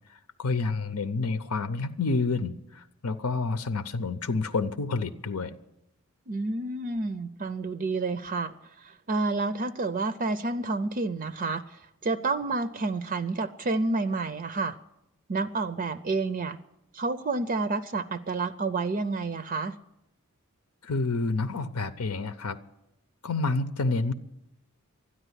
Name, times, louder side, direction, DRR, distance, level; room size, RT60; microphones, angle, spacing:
voice 1, 0.4-5.5 20.8-22.6 23.2-24.1, left 3 dB, 85° left, 0.7 m, -29 dB
voice 2, 6.3-14.8 15.3-16.6 16.9-19.8, right 3 dB, 40° right, 0.5 m, -29 dB
13.0 x 10.0 x 9.8 m
head